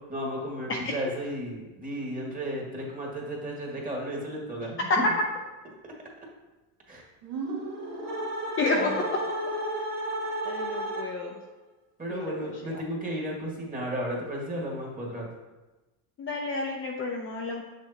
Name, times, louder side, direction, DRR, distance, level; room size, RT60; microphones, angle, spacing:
voice 1, 0.1-4.8 6.9-7.0 8.7-8.9 12.0-15.3, equal, 15° right, -2 dB, 1.7 m, -34 dB
sound 1, 7.2-11.4, right 1 dB, 70° right, 2.2 m, -33 dB
voice 2, 8.6-8.9 9.4-9.5 10.4-11.3 12.1-12.8 16.2-17.6, left 3 dB, 25° left, 0 dB, 0.6 m, -31 dB
6.6 x 6.1 x 2.8 m, 1.1 s
supercardioid pair, 115°, 46 cm